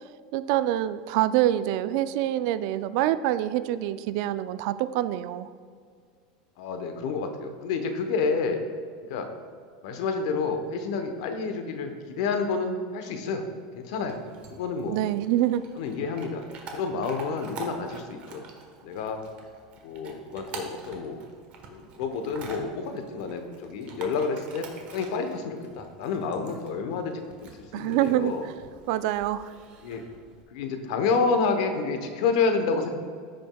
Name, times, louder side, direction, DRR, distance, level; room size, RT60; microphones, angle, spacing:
voice 1, 0.3-5.5 14.9-15.7 27.7-28.5 28.9-29.5, right 13 dB, 60° right, 14 dB, 0.3 m, -26 dB
voice 2, 6.6-8.6 9.1-9.3 9.8-13.5 13.7-14.2 14.5-15.0 15.8-16.4 16.7-18.4 18.8-19.2 19.8-21.3 21.7-28.5 29.8-30.0 30.5-32.9, left 4 dB, 70° left, 6 dB, 1.0 m, -29 dB
Chewing mastication / Dog, 13.9-30.4, right 4 dB, 40° right, 1.2 m, -46 dB
14.5 x 5.2 x 2.3 m, 2.1 s
supercardioid pair, 135°, 3 cm